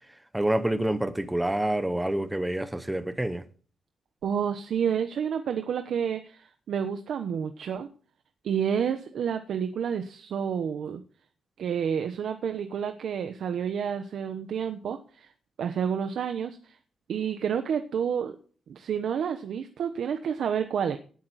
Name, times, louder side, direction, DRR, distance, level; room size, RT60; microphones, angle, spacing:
voice 1, 0.3-3.5, right 1 dB, 5° right, 0.9 m, -27 dB
voice 2, 4.2-7.9 8.4-11.0 11.6-15.3 15.6-16.8 17.1-18.4 18.7-21.0, right 7 dB, 60° right, 1.1 m, -29 dB
17.0 x 9.0 x 4.2 m
wide cardioid pair, 165°, 0 cm